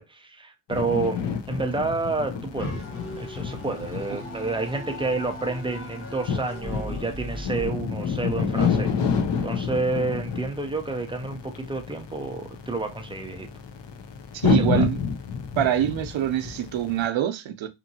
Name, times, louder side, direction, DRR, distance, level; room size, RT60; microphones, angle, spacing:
voice 1, 0.0-2.8 3.2-8.9 9.4-13.5 14.5-14.9, right 3 dB, 10° right, 0.4 m, -29 dB
sound 1, 0.7-17.1, left 6 dB, 60° left, 0.6 m, -29 dB
sound 2, 2.6-7.7, equal, 30° left, 1.1 m, -37 dB
voice 2, 14.3-15.0 15.6-17.7, right 11 dB, 70° right, 0.6 m, -25 dB
2.8 x 2.6 x 2.6 m
wide cardioid pair, 155°, 48 cm